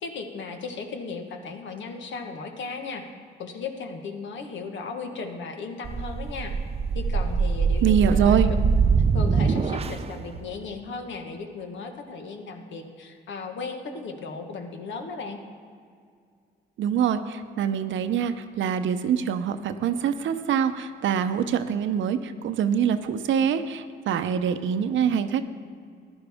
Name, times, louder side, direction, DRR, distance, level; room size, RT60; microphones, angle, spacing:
voice 1, 0.0-3.0 3.4-6.5 6.9-8.4 9.1-15.4, left 4 dB, 70° left, 4 dB, 1.4 m, -36 dB
sound 1, 5.8-10.2, right 5 dB, 30° right, 0.5 m, -23 dB
voice 2, 7.8-8.5 16.8-25.4, right 8 dB, 70° right, 10 dB, 0.7 m, -24 dB
15.0 x 11.0 x 3.6 m, 2.2 s
cardioid pair, 90°, 20 cm